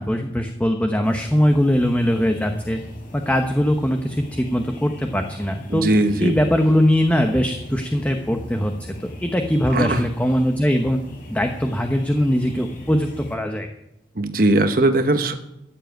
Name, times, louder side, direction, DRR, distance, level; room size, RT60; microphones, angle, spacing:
voice 1, 0.0-2.8 3.1-5.9 6.2-8.7 9.2-11.0 11.3-13.7, equal, 10° left, 4 dB, 0.9 m, -21 dB
sound 1, 1.0-13.4, equal, 50° left, 5.1 m, -40 dB
voice 2, 5.7-6.4 9.7-10.1 14.1-15.4, right 2 dB, 55° right, 8 dB, 1.1 m, -19 dB
14.5 x 7.6 x 9.2 m, 0.84 s
head